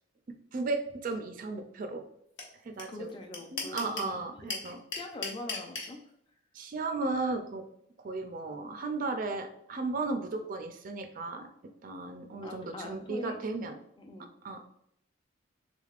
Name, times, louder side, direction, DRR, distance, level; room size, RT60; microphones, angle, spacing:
voice 1, 0.5-2.0 2.6-3.1 3.5-4.8 6.5-7.6 8.0-11.5 11.8-13.8 14.4-14.6, right 3 dB, 45° right, 6 dB, 0.3 m, -35 dB
sound 1, 2.4-2.5 2.8-2.9 3.1-4.1 4.5-5.9, left 4 dB, 60° left, 0.9 m, -35 dB
voice 2, 2.9-4.2 4.9-6.0 12.4-13.4 14.0-14.3, left 1 dB, 25° left, 3 dB, 0.4 m, -42 dB
3.5 x 3.3 x 2.4 m, 0.73 s
head